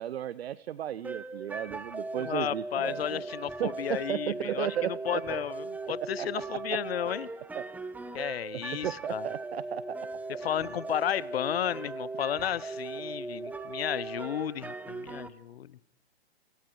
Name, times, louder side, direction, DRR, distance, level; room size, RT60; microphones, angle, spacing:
voice 1, 0.0-3.2 3.6-5.4 6.2-6.3 7.5-7.6 8.8-10.0, right 11 dB, 65° right, 18 dB, 0.7 m, -34 dB
sound 1, 1.0-15.3, right 3 dB, 5° right, 0.9 m, -39 dB
voice 2, 2.1-7.3 8.1-9.3 10.3-15.8, left 10 dB, 65° left, 22 dB, 1.0 m, -33 dB
29.5 x 24.5 x 4.7 m, 0.88 s
hypercardioid pair, 130°, 33 cm